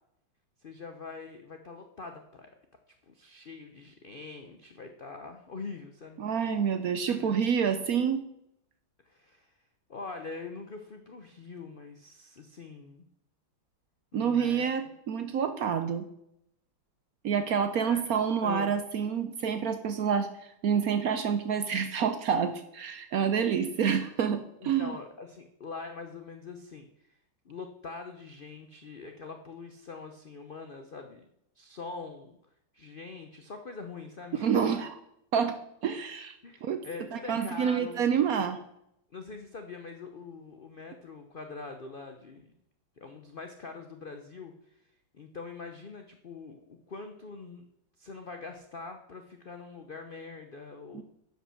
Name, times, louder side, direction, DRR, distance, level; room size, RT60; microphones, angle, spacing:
voice 1, 0.6-2.5 3.0-6.2 7.1-7.4 9.1-9.5 9.9-13.1 14.1-14.7 17.9-18.7 24.6-27.2 27.4-31.3 31.6-32.4 32.7-34.6 36.4-38.0 39.1-42.5 43.0-44.8 45.1-47.6 48.0-51.0, left 4 dB, 75° left, 5 dB, 0.4 m, -43 dB
voice 2, 6.2-8.3 14.1-16.1 17.2-25.0 34.3-34.9 35.3-35.6 35.8-36.3 36.6-36.8 37.1-38.6 50.9-51.0, right 7 dB, 65° right, 9 dB, 0.9 m, -28 dB
10.5 x 5.5 x 6.3 m, 0.78 s
omnidirectional pair, 2.1 m